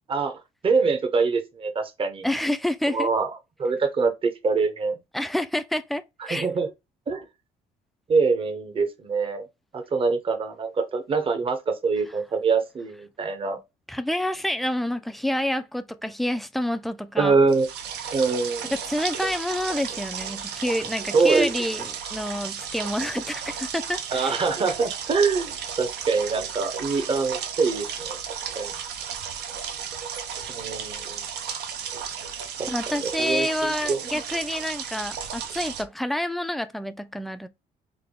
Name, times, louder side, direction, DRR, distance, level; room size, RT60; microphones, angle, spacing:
voice 1, 0.6-2.2 2.9-3.3 3.6-5.0 6.3-6.7 7.1-7.2 8.1-9.5 9.7-13.6 17.2-17.7 18.1-18.7 21.1-21.5 24.1-25.5 25.8-28.1 28.6-28.7 30.5-31.2 32.6-34.0, right 4 dB, 30° right, 0.8 m, -24 dB
voice 2, 2.2-3.1 5.1-6.5 13.9-17.4 18.7-24.4 32.7-37.5, left 1 dB, ahead, 0.4 m, -28 dB
sound 1, 17.5-35.8, right 7 dB, 75° right, 0.7 m, -34 dB
3.4 x 2.2 x 3.6 m
cardioid pair, 110°, 17 cm